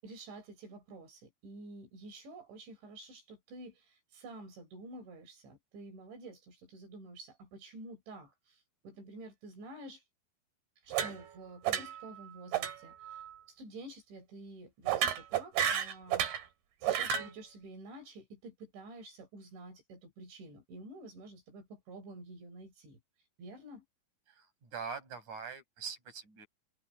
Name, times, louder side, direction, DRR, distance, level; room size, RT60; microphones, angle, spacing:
voice 1, 0.0-10.0 10.8-13.2 13.5-16.3 16.8-23.0 23.4-23.8, right 2 dB, 85° right, 8.3 m, -50 dB
sound 1, 10.9-11.4 11.6-12.1 12.5-12.8 13.0-13.3 14.9-16.4 16.8-17.3, right 9 dB, 65° right, 4.0 m, -32 dB
voice 2, 24.3-26.5, right 5 dB, 40° right, 8.9 m, -43 dB
omnidirectional pair, 5.1 m